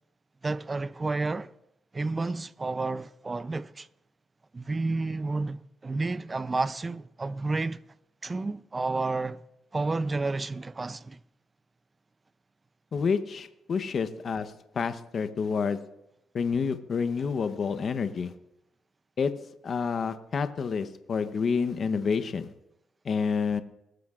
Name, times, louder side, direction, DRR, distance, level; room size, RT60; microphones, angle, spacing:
voice 1, 0.4-1.5 1.9-3.9 4.5-7.8 8.2-9.4 9.7-11.2, right 3 dB, 25° right, 0.5 m, -30 dB
voice 2, 12.9-15.8 16.3-18.3 19.2-19.3 19.6-22.5 23.0-23.6, left 5 dB, 50° left, 0.8 m, -28 dB
22.0 x 13.0 x 2.5 m
cardioid pair, 90°, 0 cm